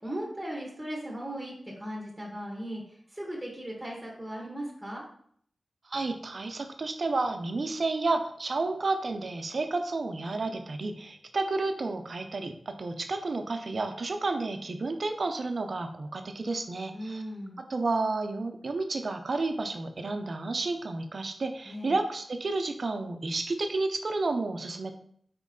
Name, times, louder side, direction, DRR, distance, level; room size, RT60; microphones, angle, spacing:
voice 1, 0.0-2.8 3.1-5.0 16.9-17.6 21.6-22.0, equal, 10° right, -3 dB, 1.4 m, -37 dB
voice 2, 5.8-17.2 17.6-24.9, right 3 dB, 60° right, 6 dB, 0.6 m, -31 dB
4.4 x 3.1 x 3.8 m, 0.62 s
cardioid pair, 50°, 0 cm